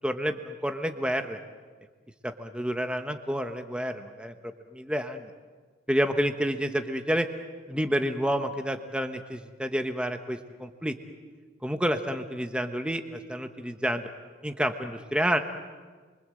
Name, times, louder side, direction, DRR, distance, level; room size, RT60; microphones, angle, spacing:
voice 1, 0.0-1.4 2.2-4.3 4.7-5.3 5.9-7.3 7.7-10.9 11.6-14.0 14.4-15.4, equal, 5° right, 6 dB, 1.1 m, -29 dB
29.5 x 24.0 x 7.8 m, 1.5 s
head